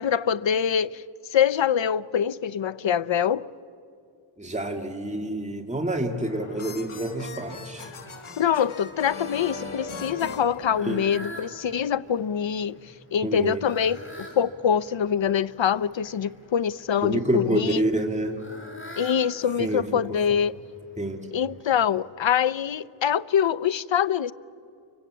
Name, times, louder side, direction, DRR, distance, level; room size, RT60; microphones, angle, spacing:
voice 1, 0.0-3.5 8.4-17.8 19.0-20.6 21.3-24.3, left 8 dB, 65° left, 0.7 m, -24 dB
voice 2, 4.4-7.9 10.9-11.0 13.2-13.6 17.0-18.4 19.6-19.8 21.0-21.3, right 1 dB, 15° right, 2.1 m, -27 dB
sound 1, 6.0-11.4, left 4 dB, 85° left, 1.8 m, -39 dB
Fowl, 6.7-22.1, left 1 dB, 25° left, 6.7 m, -48 dB
28.5 x 24.5 x 8.4 m
wide cardioid pair, 65°, 48 cm